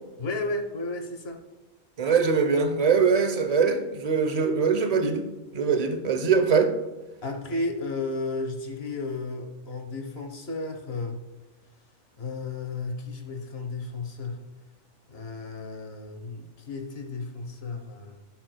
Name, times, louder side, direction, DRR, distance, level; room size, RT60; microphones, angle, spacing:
voice 1, 0.2-1.4 7.2-11.2 12.2-14.4 15.1-18.2, left 3 dB, 60° left, 5 dB, 1.4 m, -33 dB
voice 2, 2.0-5.2 5.5-6.7, right 5 dB, 35° right, 6 dB, 0.9 m, -22 dB
17.0 x 6.1 x 2.3 m, 1.2 s
omnidirectional pair, 1.2 m